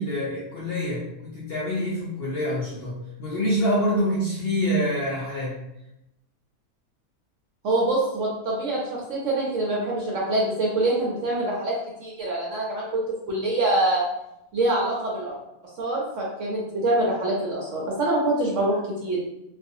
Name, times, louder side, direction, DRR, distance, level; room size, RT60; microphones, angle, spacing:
voice 1, 0.0-5.6, equal, 75° left, -6 dB, 0.5 m, -26 dB
voice 2, 7.6-14.0 14.5-15.4 15.8-19.2, right 2 dB, 65° right, -4 dB, 0.8 m, -25 dB
2.5 x 2.3 x 2.6 m, 0.85 s
omnidirectional pair, 1.6 m